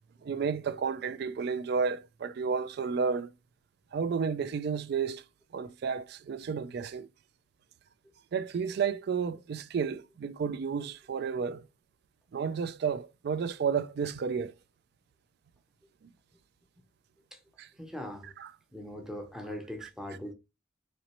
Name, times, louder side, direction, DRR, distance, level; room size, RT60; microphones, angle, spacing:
voice 1, 0.2-3.3 3.9-5.2 5.5-7.1 8.3-11.7 12.3-14.5 16.0-16.1 17.6-17.7 18.4-18.5 19.8-19.9, right 6 dB, 55° right, 0.3 m, -32 dB
voice 2, 17.7-18.3 18.7-20.3, left 1 dB, ahead, 0.6 m, -40 dB
4.2 x 2.9 x 2.9 m
head